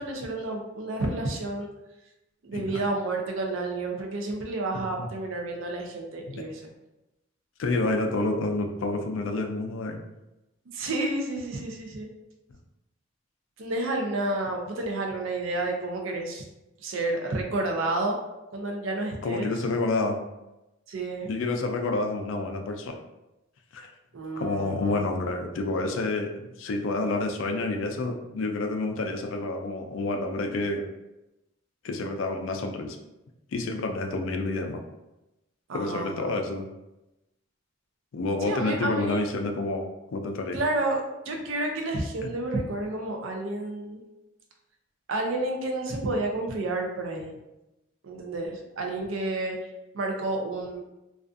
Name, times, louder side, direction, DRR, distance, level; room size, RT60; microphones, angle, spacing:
voice 1, 0.0-1.7 2.4-6.7 10.7-12.1 13.6-16.4 16.8-18.2 18.5-19.5 20.9-21.3 24.1-25.1 35.7-36.4 38.4-39.5 40.5-41.0 41.3-44.0 45.1-47.4 48.0-49.6 49.9-50.8, right 2 dB, 65° right, 2 dB, 0.5 m, -30 dB
voice 2, 2.5-2.8 4.7-5.1 6.3-6.4 7.6-10.0 19.2-20.2 21.3-22.9 23.7-23.9 24.4-26.3 26.6-30.9 31.8-33.0 33.5-34.8 35.7-36.7 38.1-39.8 40.1-40.6 42.2-42.3, left 2 dB, 65° left, 4 dB, 0.4 m, -29 dB
2.4 x 2.3 x 2.4 m, 0.96 s
head